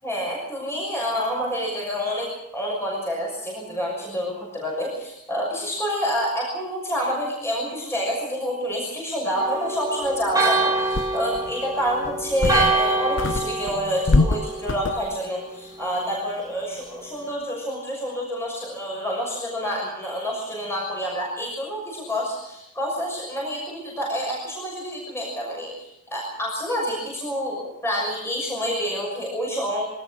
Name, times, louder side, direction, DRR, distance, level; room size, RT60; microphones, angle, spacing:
voice 1, 0.0-29.8, equal, 10° left, -3 dB, 6.4 m, -28 dB
Church bell, 9.4-15.1, right 3 dB, 15° right, 3.2 m, -26 dB
sound 1, 10.3-10.4 10.9-11.5 12.0-12.9 13.2-15.2, left 3 dB, 55° left, 0.7 m, -24 dB
23.5 x 19.0 x 6.5 m, 0.92 s
head